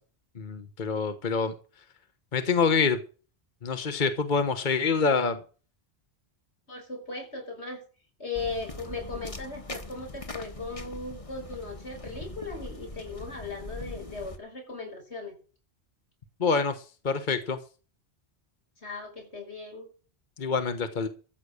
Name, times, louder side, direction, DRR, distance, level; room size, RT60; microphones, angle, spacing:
voice 1, 0.4-1.5 2.3-3.0 3.6-5.4 16.4-17.6 20.4-21.1, left 5 dB, 45° left, 1.3 m, -26 dB
voice 2, 6.7-7.8 8.2-15.4 18.8-19.9, left 3 dB, 85° left, 6.5 m, -38 dB
sound 1, 8.3-14.4, left 2 dB, 30° left, 1.6 m, -41 dB
14.5 x 8.2 x 6.5 m
omnidirectional pair, 1.1 m